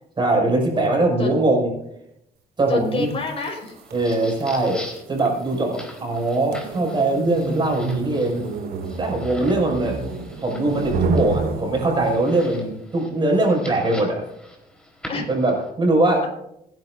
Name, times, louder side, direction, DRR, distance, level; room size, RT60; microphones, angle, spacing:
voice 1, 0.2-1.7 2.6-3.1 3.9-4.8 5.1-8.4 9.0-10.0 10.4-14.2 15.3-16.2, right 2 dB, 30° right, 0 dB, 6.2 m, -21 dB
voice 2, 0.7-1.3 2.7-3.8 9.6-9.7 15.1-15.3, left 3 dB, 35° left, 1 dB, 5.2 m, -29 dB
sound 1, 3.1-12.5, right 4 dB, 70° right, 2.5 m, -30 dB
sound 2, 3.7-15.7, left 1 dB, 5° left, 4.0 m, -43 dB
26.0 x 10.5 x 2.7 m, 0.78 s
cardioid pair, 110°, 17 cm